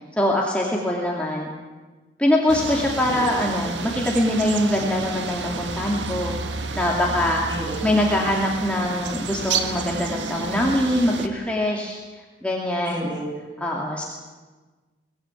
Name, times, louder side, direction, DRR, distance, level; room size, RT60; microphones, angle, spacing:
voice 1, 0.2-1.5 2.2-6.3 6.7-7.5 7.8-12.0 12.4-13.1 13.6-14.0, left 1 dB, 5° left, -2 dB, 2.5 m, -23 dB
sound 1, 2.5-11.3, right 4 dB, 75° right, 1.7 m, -30 dB
voice 2, 3.1-3.5 7.5-8.0 12.9-13.5, right 2 dB, 25° right, 0 dB, 6.4 m, -33 dB
23.0 x 16.5 x 9.1 m, 1.3 s
head